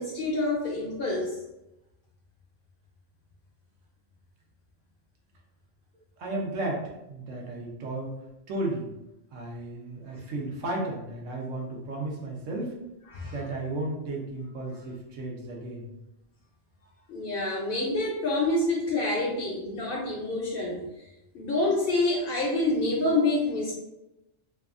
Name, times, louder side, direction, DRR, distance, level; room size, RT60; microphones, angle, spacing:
voice 1, 0.0-1.3 13.1-13.3 17.1-20.8 21.3-23.7, left 2 dB, 60° left, -2 dB, 0.6 m, -27 dB
voice 2, 6.2-8.1 8.5-8.9 9.3-12.8 13.2-15.9, right 2 dB, 80° right, -1 dB, 1.0 m, -34 dB
2.7 x 2.3 x 2.4 m, 0.91 s
omnidirectional pair, 1.3 m